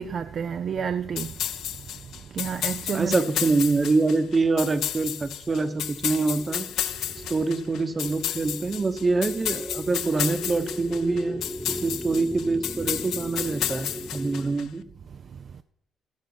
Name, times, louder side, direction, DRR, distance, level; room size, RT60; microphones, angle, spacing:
voice 1, 0.0-1.3 2.3-3.2, right 7 dB, 55° right, 0.4 m, -29 dB
sound 1, 1.2-14.6, left 11 dB, 80° left, 0.5 m, -32 dB
voice 2, 2.9-6.7 7.3-14.8, right 3 dB, 30° right, 1.0 m, -25 dB
sound 2, 6.3-14.6, equal, 5° right, 1.1 m, -38 dB
11.5 x 4.9 x 7.8 m
cardioid pair, 90°, 0 cm